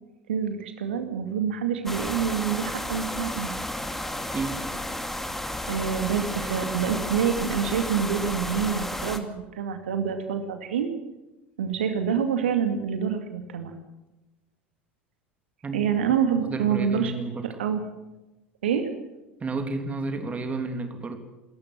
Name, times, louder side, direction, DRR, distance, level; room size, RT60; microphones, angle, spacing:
voice 1, 0.3-3.6 5.7-10.9 11.6-13.7 15.7-17.1 17.4-17.8 18.6-18.9, right 7 dB, 70° right, 7 dB, 2.2 m, -27 dB
sound 1, 1.9-9.2, left 1 dB, 5° left, 2.3 m, -32 dB
voice 2, 4.3-4.7 15.6-15.8 16.4-17.6 19.4-21.2, right 3 dB, 20° right, 6 dB, 3.1 m, -31 dB
28.0 x 14.0 x 7.6 m, 1.0 s
figure-of-eight pair, 75°, 6 cm